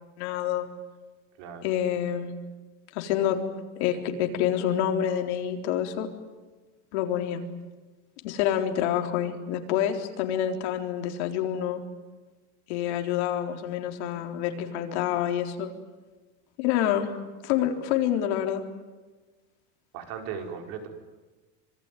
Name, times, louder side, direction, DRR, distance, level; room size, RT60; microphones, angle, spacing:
voice 1, 0.2-0.7 1.6-2.3 2.9-3.4 3.8-6.1 6.9-7.4 8.2-11.8 12.7-15.7 16.6-17.1 17.4-18.6, left 10 dB, 65° left, 4 dB, 4.0 m, -27 dB
voice 2, 19.9-20.9, right 7 dB, 50° right, 4 dB, 5.1 m, -37 dB
26.5 x 23.5 x 9.3 m, 1.2 s
supercardioid pair, 170°, 36 cm